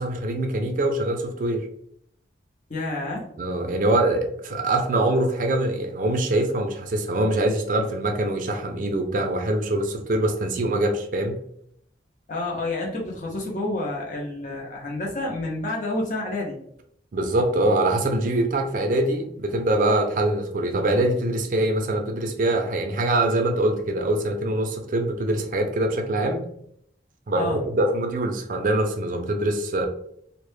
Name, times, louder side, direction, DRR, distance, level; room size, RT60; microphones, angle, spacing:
voice 1, 0.0-1.7 3.4-11.4 17.1-26.4 27.3-29.9, right 1 dB, 45° right, 4 dB, 0.4 m, -24 dB
voice 2, 2.7-3.2 12.3-16.6 27.3-27.6, left 2 dB, 45° left, -2 dB, 0.6 m, -29 dB
2.0 x 2.0 x 3.1 m, 0.69 s
head